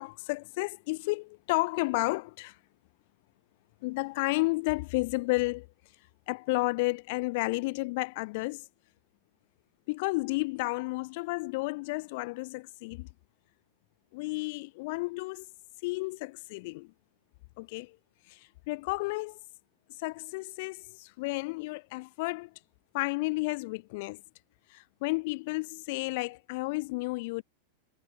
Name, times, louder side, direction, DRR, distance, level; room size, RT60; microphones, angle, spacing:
voice 1, 0.0-2.6 3.8-5.7 6.3-8.6 9.9-13.1 14.1-15.4 15.8-16.9 17.6-18.0 18.3-19.4 20.0-22.5 22.9-24.2 24.7-27.4, left 24 dB, 50° left, 8.0 m, -32 dB
figure-of-eight pair, 90°, 0 cm